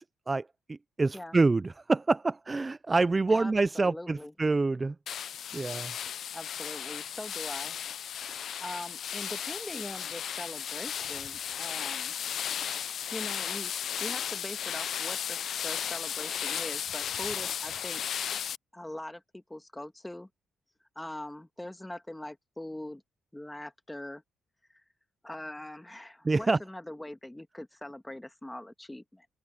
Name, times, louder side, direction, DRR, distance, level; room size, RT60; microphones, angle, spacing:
voice 1, 0.0-4.9 5.5-5.9 26.3-26.6, right 3 dB, 25° right, 0.4 m, -27 dB
voice 2, 3.3-4.3 6.3-7.8 8.6-12.2 13.1-13.7 14.0-18.0 18.7-20.3 20.9-23.0 23.3-24.2 24.7-24.8 25.2-29.3, left 1 dB, 10° left, 1.7 m, -42 dB
sound 1, 5.1-18.6, left 9 dB, 60° left, 0.5 m, -35 dB
open air
cardioid pair, 90°, 0 cm